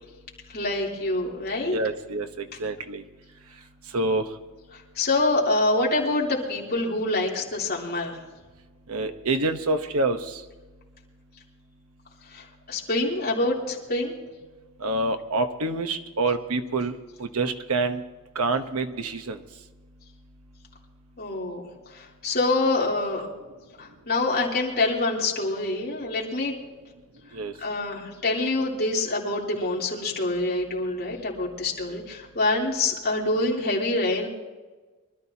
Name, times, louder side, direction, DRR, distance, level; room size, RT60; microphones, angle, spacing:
voice 1, 0.5-1.8 4.7-8.2 12.3-14.2 21.2-23.3 23.8-26.5 27.6-34.3, left 2 dB, 45° left, -3 dB, 3.4 m, -26 dB
voice 2, 1.6-3.0 3.9-4.3 8.9-10.4 14.8-18.0 18.3-19.4 27.3-27.5, right 2 dB, 85° right, 7 dB, 1.0 m, -27 dB
24.5 x 13.0 x 2.9 m, 1.3 s
head